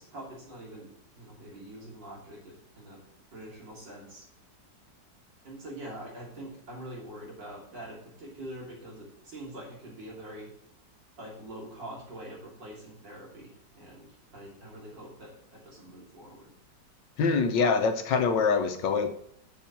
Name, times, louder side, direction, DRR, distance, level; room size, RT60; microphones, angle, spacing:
voice 1, 0.0-3.0 3.3-4.2 5.5-10.5 11.2-16.5, right 1 dB, 85° right, -3 dB, 3.7 m, -44 dB
voice 2, 17.2-19.1, left 5 dB, 85° left, 7 dB, 1.6 m, -24 dB
7.3 x 6.6 x 5.9 m, 0.68 s
omnidirectional pair, 1.9 m